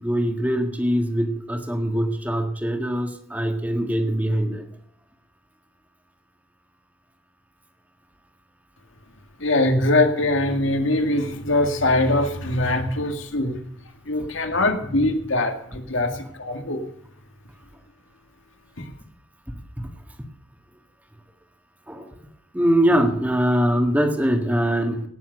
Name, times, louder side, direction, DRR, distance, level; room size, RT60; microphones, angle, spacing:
voice 1, 0.0-4.7 19.8-19.9 21.9-22.1 22.5-25.1, equal, 10° right, 5 dB, 1.6 m, -22 dB
voice 2, 9.4-13.6 14.1-16.8 18.8-18.9, left 2 dB, 75° left, 6 dB, 2.0 m, -22 dB
17.5 x 7.1 x 6.6 m, 0.72 s
head